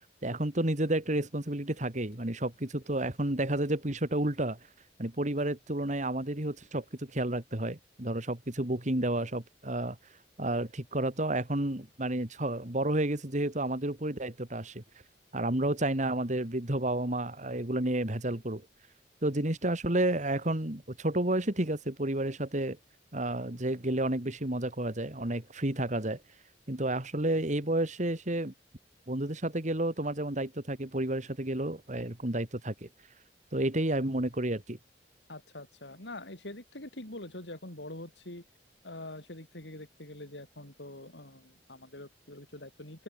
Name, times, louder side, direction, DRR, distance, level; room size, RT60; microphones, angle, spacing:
voice 1, 0.2-4.6 5.0-10.0 10.4-14.8 15.3-18.6 19.2-22.8 23.1-26.2 26.7-28.5 29.1-32.9 33.5-34.8, right 1 dB, 45° right, 2.6 m, -31 dB
voice 2, 35.3-38.4 38.8-43.0, left 1 dB, 80° left, 5.9 m, -44 dB
open air
head